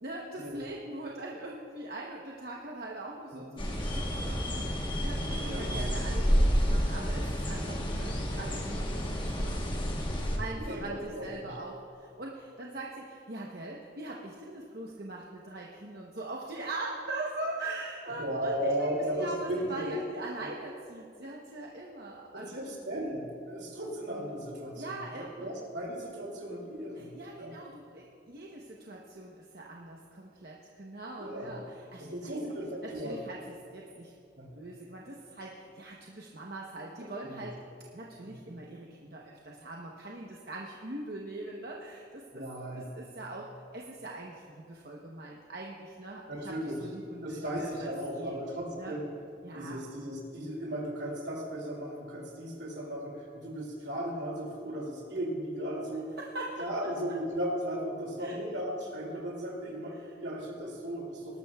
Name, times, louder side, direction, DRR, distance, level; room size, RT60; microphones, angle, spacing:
voice 1, 0.0-9.7 10.4-22.8 24.8-25.5 27.0-32.3 32.8-34.1 34.5-37.6 37.9-42.4 42.7-46.5 46.8-48.4 48.8-48.9 49.4-49.8 56.2-56.7 58.2-58.4 60.0-60.1, right 2 dB, 55° right, -2 dB, 0.9 m, -42 dB
sound 1, 3.6-10.4, equal, 25° left, 1.1 m, -30 dB
voice 2, 5.4-5.9 6.2-6.4 10.5-11.5 18.2-19.9 20.4-20.5 22.3-27.6 31.2-31.6 32.0-33.2 34.4-34.5 37.2-37.5 38.2-38.3 42.3-42.9 46.3-46.8 47.2-49.1 49.5-56.2 56.6-61.4, equal, 75° right, 0 dB, 2.5 m, -36 dB
19.5 x 12.0 x 2.3 m, 2.5 s
head